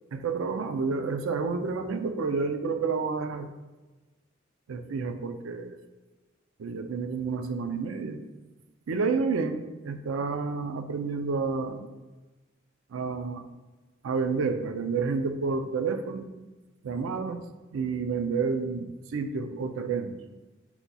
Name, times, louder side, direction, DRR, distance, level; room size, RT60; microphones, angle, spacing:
voice 1, 0.1-3.5 4.7-5.8 6.6-8.2 8.9-11.9 12.9-13.4 14.0-16.3 16.8-17.4 17.7-20.2, right 4 dB, 90° right, 8 dB, 0.4 m, -30 dB
5.8 x 4.0 x 2.2 m, 1.2 s
head